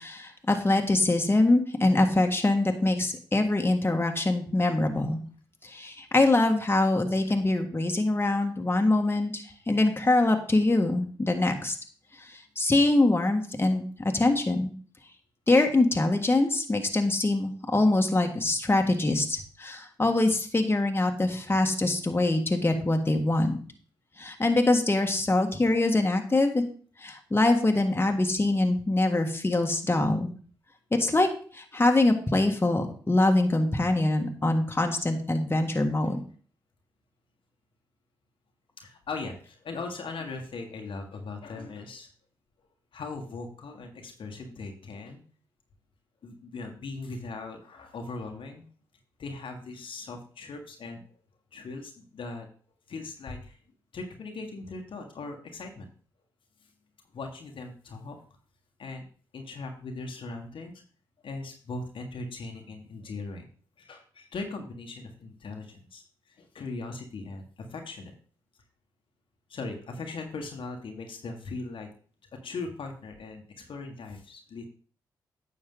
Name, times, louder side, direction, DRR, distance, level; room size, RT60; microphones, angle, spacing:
voice 1, 0.0-5.2 5.6-11.7 12.2-14.7 15.5-23.6 24.2-26.6 27.0-30.3 30.9-31.3 31.5-36.2, left 2 dB, 25° left, 4 dB, 1.6 m, -24 dB
voice 2, 38.8-42.1 42.9-45.2 46.2-48.6 49.2-51.0 51.5-52.5 52.9-53.6 53.9-55.9 57.1-58.2 58.8-59.0 59.3-60.7 61.2-63.5 63.8-66.0 66.3-67.4 67.7-68.1 69.5-71.9 72.4-74.7, left 3 dB, 65° left, 3 dB, 1.5 m, -39 dB
9.6 x 6.4 x 3.8 m, 0.42 s
supercardioid pair, 40°, 9 cm